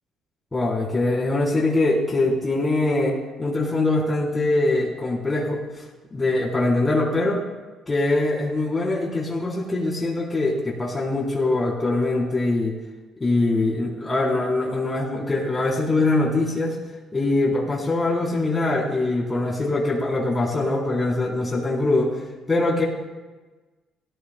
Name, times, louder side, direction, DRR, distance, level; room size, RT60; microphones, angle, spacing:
voice 1, 0.5-5.8 6.1-7.4 7.9-12.8 13.2-16.8 17.1-22.8, left 2 dB, 25° left, -3 dB, 3.9 m, -23 dB
17.0 x 13.5 x 2.3 m, 1.2 s
hypercardioid pair, 60°, 0 cm